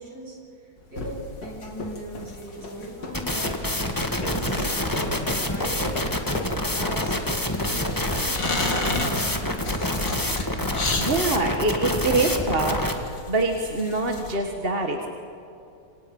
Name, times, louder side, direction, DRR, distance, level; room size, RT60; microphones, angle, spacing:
voice 1, 0.0-3.6 4.0-9.0, right 1 dB, 55° right, -3 dB, 8.1 m, -39 dB
sound 1, 0.8-6.7, left 2 dB, 60° left, 2.6 m, -36 dB
sound 2, 1.0-14.3, left 2 dB, 75° left, 3.6 m, -34 dB
sound 3, 3.1-12.9, left 1 dB, 10° left, 1.7 m, -27 dB
voice 2, 11.0-12.8 13.3-15.1, right 2 dB, 35° right, 3 dB, 1.7 m, -24 dB
27.5 x 27.0 x 5.5 m, 2.7 s
omnidirectional pair, 1.9 m